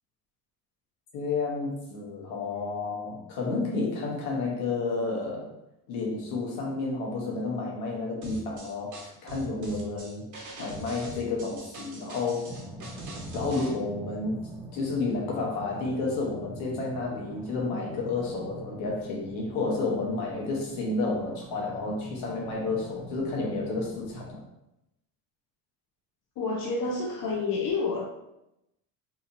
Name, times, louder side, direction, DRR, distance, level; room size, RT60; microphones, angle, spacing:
voice 1, 1.1-5.5 5.9-10.3 10.6-12.6 13.3-14.4 14.7-24.4, left 3 dB, 70° left, -2 dB, 1.1 m, -31 dB
sound 1, 8.2-13.7, right 2 dB, 40° right, 1.0 m, -42 dB
sound 2, 12.5-24.3, right 1 dB, 5° right, 0.4 m, -44 dB
voice 2, 26.4-28.0, left 4 dB, 45° left, 0 dB, 0.6 m, -29 dB
2.9 x 2.6 x 2.6 m, 0.86 s
hypercardioid pair, 75°, 48 cm